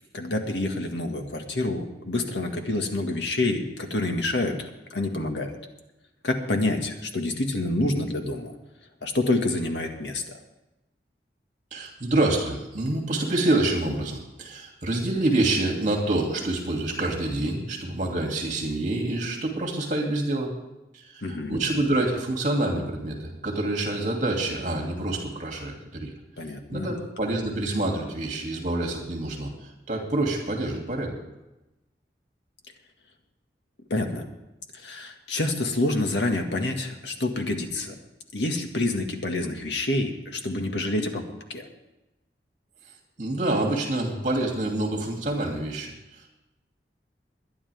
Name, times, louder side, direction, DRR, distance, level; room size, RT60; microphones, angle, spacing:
voice 1, 0.1-5.6 6.2-8.6 9.0-10.2 21.2-21.6 26.4-26.9 33.9-34.3 34.7-38.0 38.3-41.2 41.5-41.7, left 2 dB, 85° left, 4 dB, 1.9 m, -27 dB
voice 2, 11.7-20.5 20.9-26.1 26.7-29.5 29.9-31.2 43.2-46.3, right 2 dB, 45° right, 0 dB, 2.7 m, -27 dB
22.5 x 10.0 x 3.6 m, 0.96 s
head